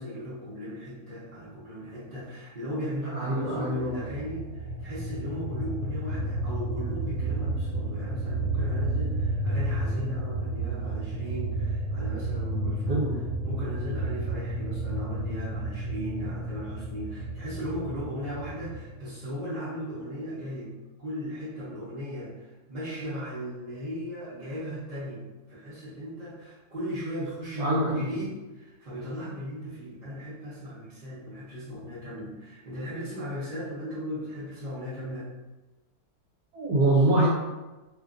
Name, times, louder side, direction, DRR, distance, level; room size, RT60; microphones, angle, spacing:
voice 1, 0.0-20.7 21.0-35.3, equal, 40° right, -12 dB, 0.8 m, -37 dB
voice 2, 3.0-3.9 12.9-13.1 27.6-28.1 36.5-37.3, right 2 dB, 75° right, -5 dB, 1.1 m, -24 dB
sound 1, 3.5-18.9, right 1 dB, 55° right, 1.1 m, -31 dB
2.7 x 2.4 x 2.4 m, 1.1 s
omnidirectional pair, 1.7 m